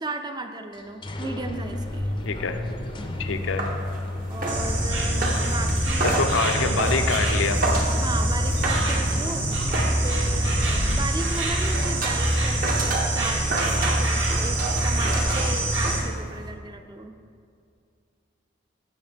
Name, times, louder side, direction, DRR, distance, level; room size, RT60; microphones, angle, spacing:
voice 1, 0.0-2.1 4.3-6.2 8.0-9.7 10.0-17.1, right 2 dB, 20° right, 7 dB, 0.5 m, -35 dB
sound 1, 0.7-12.4, left 1 dB, 25° left, 0.5 m, -32 dB
sound 2, 1.6-16.5, right 2 dB, 45° right, 1.1 m, -32 dB
voice 2, 2.3-2.6 3.2-3.7 6.0-7.6, left 4 dB, 85° left, 7 dB, 0.6 m, -26 dB
Insect, 4.5-16.0, right 1 dB, 65° right, 2.0 m, -25 dB
15.5 x 6.4 x 3.4 m, 2.4 s
head